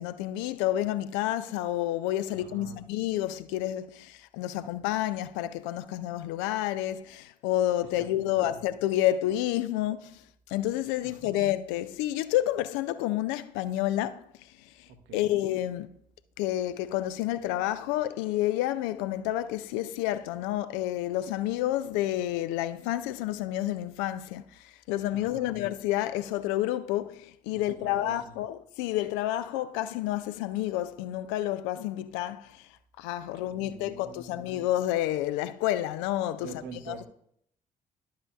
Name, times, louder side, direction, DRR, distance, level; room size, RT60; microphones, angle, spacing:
voice 1, 0.0-10.2 10.5-14.3 14.6-15.9 16.4-32.7 33.0-36.5 36.9-37.0, left 13 dB, 65° left, 0.4 m, -29 dB
voice 2, 2.3-2.8 7.8-8.6 11.0-11.5 14.9-15.4 25.1-25.6 27.5-28.3 33.3-34.6 36.4-37.1, right 5 dB, 60° right, 1.0 m, -46 dB
11.0 x 7.6 x 2.3 m
figure-of-eight pair, 40°, 21 cm